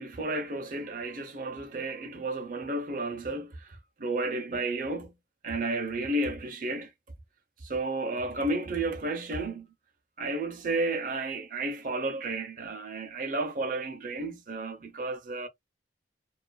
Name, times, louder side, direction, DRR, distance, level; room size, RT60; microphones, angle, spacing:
voice 1, 0.0-5.1 5.4-6.9 7.6-9.7 10.2-15.5, right 2 dB, 50° right, 0.6 m, -32 dB
2.4 x 2.4 x 2.2 m
head